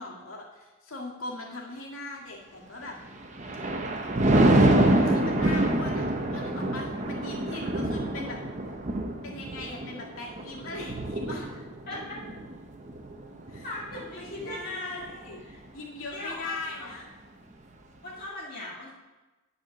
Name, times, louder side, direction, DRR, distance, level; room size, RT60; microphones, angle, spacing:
voice 1, 0.0-3.0 4.8-8.4 9.2-11.5 13.5-15.4 15.7-17.1, left 2 dB, 85° left, -2 dB, 1.9 m, -40 dB
Thunder, 3.1-14.6 15.0-15.3, right 1 dB, 35° right, 0.7 m, -26 dB
voice 2, 11.9-12.2 13.6-15.1 15.4-15.6 16.1-16.9 18.0-18.9, left 2 dB, 45° left, -7 dB, 1.7 m, -38 dB
11.0 x 4.3 x 6.6 m, 1.2 s
head